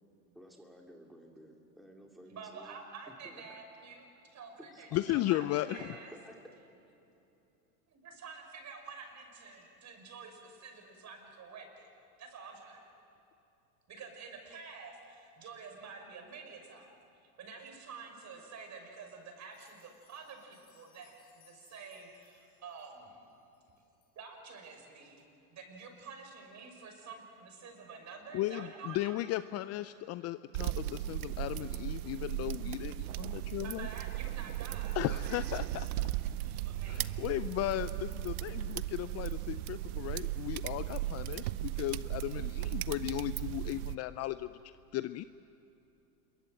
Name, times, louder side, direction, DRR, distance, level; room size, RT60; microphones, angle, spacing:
voice 1, 0.3-2.8 3.1-3.4 4.6-5.9 6.2-6.4, equal, ahead, 0 dB, 2.5 m, -54 dB
voice 2, 2.3-6.1 7.9-11.9 12.2-12.9 13.9-16.9 17.4-23.3 24.2-25.2 25.5-29.2 33.1-35.4 35.7-37.1, right 5 dB, 35° right, 4 dB, 6.2 m, -49 dB
voice 3, 4.9-5.8 28.3-33.9 34.9-35.9 36.9-45.2, left 15 dB, 35° left, 14 dB, 0.5 m, -36 dB
sound 1, 19.4-24.2 24.6-24.7 25.2-25.3 25.8-25.9, left 9 dB, 65° left, 4.1 m, -68 dB
sound 2, 30.5-44.0, right 15 dB, 70° right, 0.8 m, -36 dB
27.0 x 23.0 x 7.7 m, 2.8 s
hypercardioid pair, 95°, 45 cm